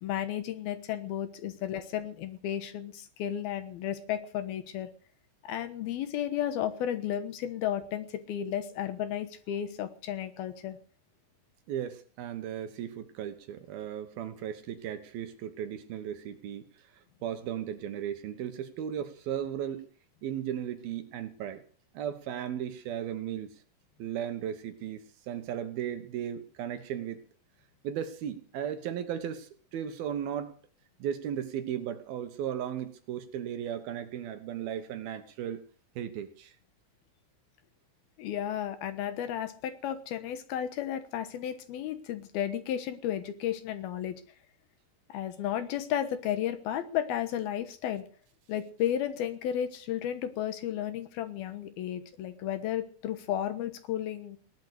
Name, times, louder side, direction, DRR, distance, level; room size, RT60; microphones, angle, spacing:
voice 1, 0.0-4.9 5.4-10.8 38.2-44.2 45.1-48.1 48.5-54.4, left 10 dB, 70° left, 11 dB, 2.9 m, -33 dB
voice 2, 11.7-16.6 17.2-19.9 20.2-21.6 21.9-23.5 24.0-25.0 25.3-27.2 27.8-30.6 31.0-35.6 36.0-36.5, right 9 dB, 70° right, 10 dB, 3.0 m, -36 dB
18.0 x 11.5 x 6.5 m, 0.43 s
omnidirectional pair, 4.8 m